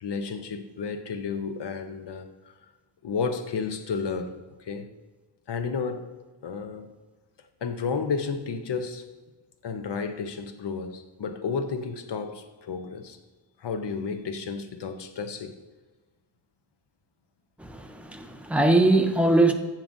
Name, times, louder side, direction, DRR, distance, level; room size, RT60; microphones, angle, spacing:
voice 1, 0.0-2.3 3.0-4.9 5.5-6.1 6.4-6.9 7.6-9.1 9.6-13.2 13.6-15.5, left 5 dB, 65° left, 0.8 m, -32 dB
voice 2, 17.6-19.5, right 2 dB, 5° right, 0.5 m, -21 dB
10.5 x 7.5 x 2.6 m
wide cardioid pair, 175°, 46 cm